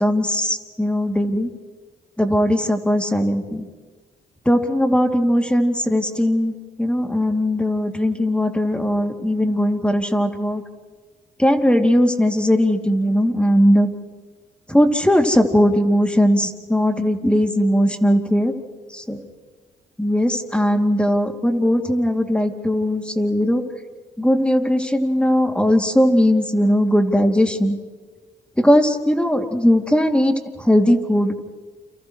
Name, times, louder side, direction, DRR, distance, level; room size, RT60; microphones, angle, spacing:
voice 1, 0.0-1.5 2.2-3.7 4.4-10.6 11.4-13.9 14.7-18.5 18.9-19.2 20.0-23.6 24.2-27.8 28.6-31.3, equal, 5° left, 4 dB, 2.8 m, -19 dB
29.5 x 29.0 x 3.3 m, 1.4 s
supercardioid pair, 55°, 18 cm